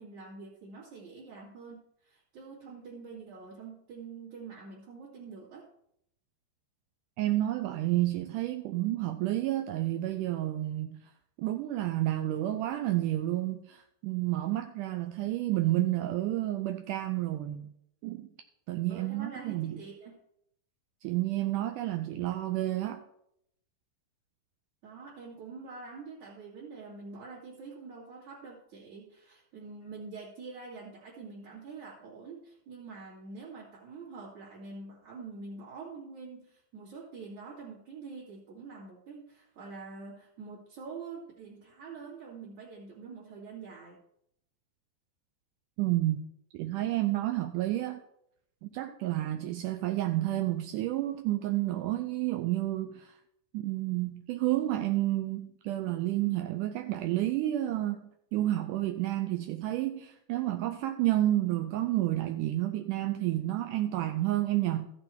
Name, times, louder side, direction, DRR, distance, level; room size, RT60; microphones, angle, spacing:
voice 1, 0.0-5.7 18.9-20.2 24.8-44.0, right 4 dB, 55° right, 3.6 m, -46 dB
voice 2, 7.2-11.0 11.4-17.7 18.0-18.3 18.7-19.8 21.0-23.0 45.8-46.2 46.5-48.0 48.6-53.1 53.5-58.0 58.3-64.9, right 15 dB, 80° right, 2.0 m, -30 dB
14.0 x 7.9 x 4.4 m
omnidirectional pair, 4.0 m